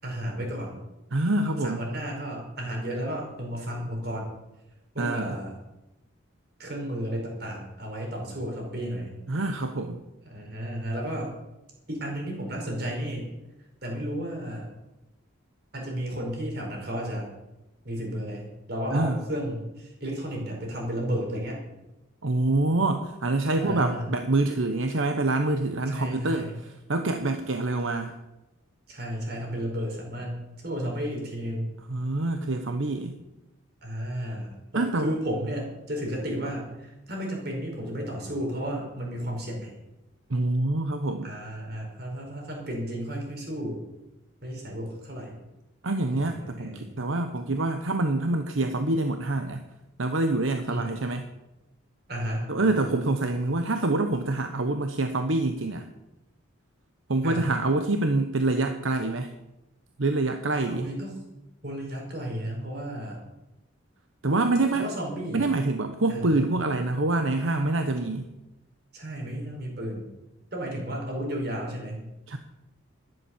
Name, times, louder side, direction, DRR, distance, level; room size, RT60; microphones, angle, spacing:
voice 1, 0.0-0.8 1.6-4.4 4.9-5.5 6.6-9.2 10.2-11.3 11.9-13.3 13.8-14.7 15.7-17.3 17.8-21.6 23.5-24.1 25.9-26.6 28.9-31.7 33.8-39.7 41.2-43.8 44.4-45.4 46.1-47.0 50.7-51.0 52.1-52.9 57.2-57.5 60.7-61.1 61.6-63.2 64.7-65.5 66.1-66.4 68.9-70.1 70.5-72.1, equal, 50° right, 0 dB, 5.0 m, -33 dB
voice 2, 1.1-1.8 5.0-5.4 9.3-10.0 18.9-19.2 22.2-28.1 31.9-33.2 34.7-35.1 40.3-41.3 45.8-49.6 50.0-51.3 52.5-55.9 57.1-59.3 60.0-60.9 64.2-64.9 65.3-68.3 72.3-72.4, right 2 dB, 80° right, 6 dB, 1.0 m, -26 dB
13.0 x 11.0 x 7.3 m, 0.98 s
head